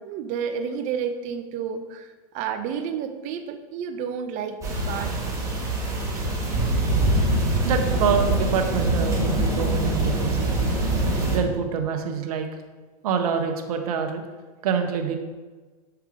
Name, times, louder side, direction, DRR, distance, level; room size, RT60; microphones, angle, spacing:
voice 1, 0.0-5.3 6.1-6.3, right 7 dB, 40° right, 7 dB, 0.7 m, -31 dB
sound 1, 4.6-11.4, right 2 dB, 15° right, 1.7 m, -24 dB
voice 2, 7.6-10.5 11.3-12.5 13.0-14.2 14.6-15.2, right 6 dB, 65° right, 4 dB, 0.9 m, -26 dB
6.8 x 3.5 x 4.8 m, 1.3 s
hypercardioid pair, 125°, 20 cm